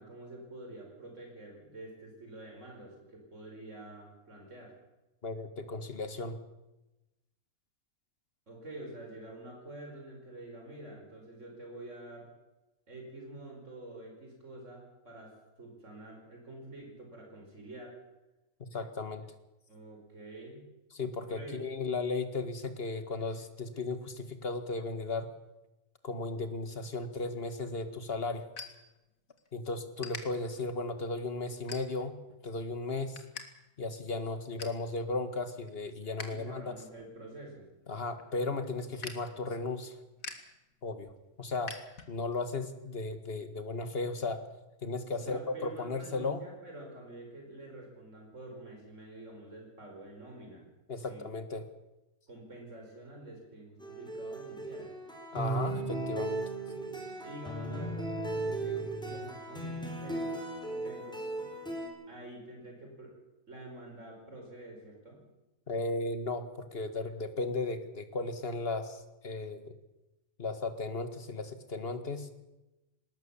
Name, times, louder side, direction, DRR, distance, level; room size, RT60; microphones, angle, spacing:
voice 1, 0.0-4.7 8.5-12.3 12.9-15.3 15.6-17.9 19.7-20.7 21.3-21.6 36.3-37.7 45.1-50.7 51.0-51.2 52.3-54.9 57.2-60.4 60.6-61.2 62.1-63.2 63.5-65.3, right 1 dB, 60° right, 1 dB, 5.4 m, -47 dB
voice 2, 5.2-6.4 18.7-19.2 21.0-25.3 26.0-28.4 29.5-32.1 32.4-33.2 33.8-36.7 37.9-40.0 40.8-41.1 41.4-41.7 42.1-44.4 44.8-46.4 50.9-51.6 55.3-56.4 65.7-69.7 70.4-72.3, left 3 dB, 45° left, 9 dB, 2.0 m, -35 dB
sound 1, 27.5-29.5 30.0-30.2 30.8-31.0 31.7-32.2 32.6-33.5 33.7-33.8 34.2-34.8 35.3-36.4 36.7-42.4, left 4 dB, 80° left, 2.5 m, -46 dB
sound 2, 53.8-61.9, right 2 dB, 5° left, 4.6 m, -36 dB
20.0 x 19.0 x 7.2 m, 1.0 s
omnidirectional pair, 1.4 m